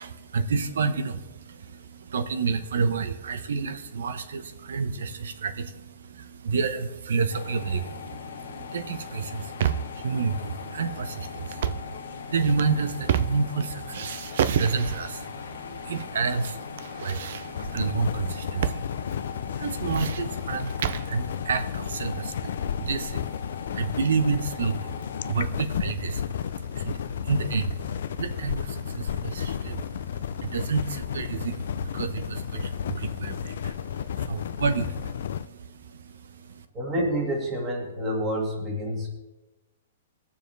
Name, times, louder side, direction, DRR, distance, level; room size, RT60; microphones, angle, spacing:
voice 1, 0.0-36.6, right 5 dB, 80° right, 11 dB, 1.0 m, -30 dB
sound 1, 7.3-25.3, left 7 dB, 80° left, 1.2 m, -40 dB
sound 2, 9.2-10.0 11.5-11.9 12.4-13.6 13.9-15.2 15.9-16.5 16.8-17.8 18.6-18.9 19.1-19.2 19.6-21.1, right 9 dB, 50° right, 0.5 m, -29 dB
sound 3, 17.5-35.5, left 8 dB, 60° left, 0.4 m, -33 dB
voice 2, 36.7-39.1, equal, 15° right, -1 dB, 2.0 m, -28 dB
21.0 x 7.1 x 3.4 m, 1.1 s
hypercardioid pair, 175°, 0 cm